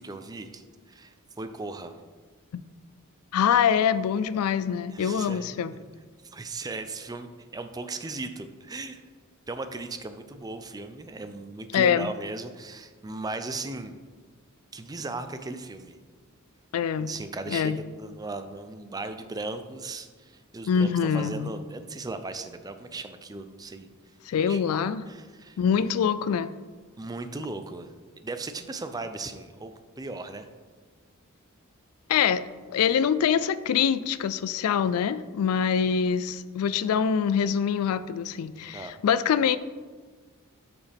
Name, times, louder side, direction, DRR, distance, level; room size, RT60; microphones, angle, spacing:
voice 1, 0.0-1.9 4.9-5.6 6.3-9.0 9.5-14.0 14.7-16.0 17.0-23.9 24.3-24.7 25.1-25.9 27.0-27.9 28.2-30.5 38.6-38.9, right 3 dB, 20° right, 9 dB, 0.4 m, -37 dB
voice 2, 3.3-5.7 11.7-12.1 16.7-17.1 17.5-17.8 20.7-21.5 24.3-25.0 25.6-26.5 32.1-32.4 32.7-39.6, left 7 dB, 80° left, 14 dB, 0.3 m, -24 dB
8.2 x 5.8 x 3.4 m, 1.4 s
head